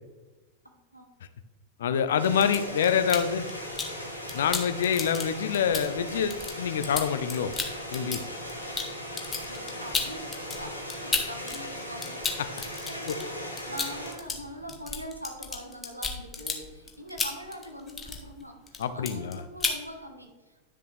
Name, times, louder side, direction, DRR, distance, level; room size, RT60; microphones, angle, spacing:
voice 1, 0.6-1.1 8.7-9.2 9.4-20.6, equal, 90° right, 3 dB, 1.4 m, -43 dB
voice 2, 1.8-3.5 4.3-7.5 7.9-8.2 18.8-19.4, left 7 dB, 60° left, 12 dB, 0.7 m, -26 dB
sound 1, 2.2-14.1, equal, 90° left, 1.6 m, -38 dB
sound 2, 2.2-4.0 4.3-11.6 11.9-18.4 18.7-19.3 19.6-19.8, left 5 dB, 15° left, 1.4 m, -33 dB
11.0 x 6.8 x 3.4 m, 1.2 s
figure-of-eight pair, 90°, 0 cm